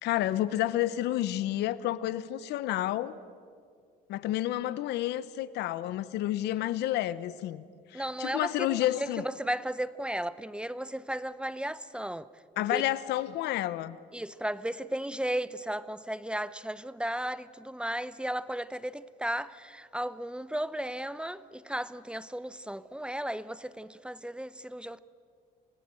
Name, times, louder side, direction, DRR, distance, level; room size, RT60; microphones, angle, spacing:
voice 1, 0.0-3.2 4.1-7.6 7.9-9.2 12.6-14.0, left 14 dB, 80° left, 1.0 m, -30 dB
voice 2, 7.9-12.3 12.7-12.8 14.1-25.0, right 1 dB, 5° right, 0.7 m, -35 dB
27.5 x 19.0 x 7.7 m
cardioid pair, 110°, 17 cm